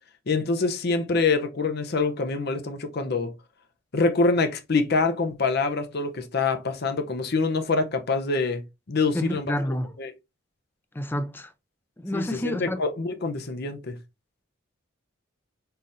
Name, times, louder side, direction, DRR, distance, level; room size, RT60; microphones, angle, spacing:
voice 1, 0.3-3.3 3.9-8.6 8.9-9.5 10.0-10.1 12.1-14.0, left 3 dB, 50° left, 0.6 m, -25 dB
voice 2, 9.1-9.9 11.0-11.5 12.0-12.8, left 1 dB, 10° left, 0.4 m, -29 dB
4.1 x 3.9 x 2.5 m
head